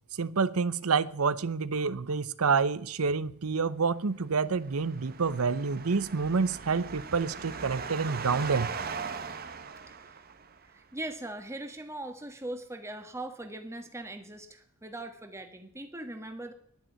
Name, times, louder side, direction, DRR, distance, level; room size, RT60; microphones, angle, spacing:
voice 1, 0.2-8.7, right 5 dB, 85° right, 0.8 m, -28 dB
sound 1, 4.3-10.7, right 5 dB, 45° right, 1.1 m, -39 dB
voice 2, 9.9-10.2 10.6-16.5, right 1 dB, 15° right, 1.5 m, -40 dB
11.0 x 10.5 x 9.3 m
head